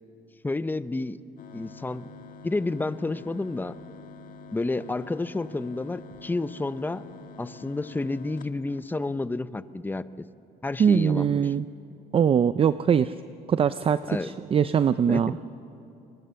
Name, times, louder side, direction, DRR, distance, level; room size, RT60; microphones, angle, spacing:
voice 1, 0.4-1.2 1.5-2.1 2.4-3.7 4.5-7.0 7.4-10.0 10.6-11.5 14.1-14.4 15.1-15.4, left 2 dB, 10° left, 14 dB, 0.7 m, -30 dB
sound 1, 1.4-9.4, left 3 dB, 55° left, 1.7 m, -46 dB
voice 2, 10.8-11.6 12.1-13.1 13.5-15.3, right 7 dB, 35° right, 13 dB, 0.5 m, -22 dB
29.5 x 22.5 x 7.0 m, 2.8 s
cardioid pair, 110°, 17 cm